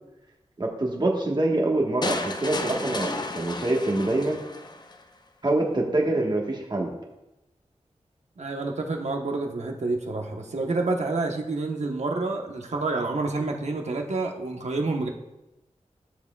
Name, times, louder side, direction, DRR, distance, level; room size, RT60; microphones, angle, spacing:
voice 1, 0.6-4.4 5.4-6.9, right 2 dB, 35° right, 0 dB, 1.3 m, -25 dB
sound 1, 2.0-5.0, left 2 dB, 35° left, 0.6 m, -32 dB
voice 2, 8.4-15.1, right 3 dB, 65° right, 2 dB, 1.1 m, -28 dB
12.5 x 7.2 x 2.3 m, 0.95 s
wide cardioid pair, 90°, 12 cm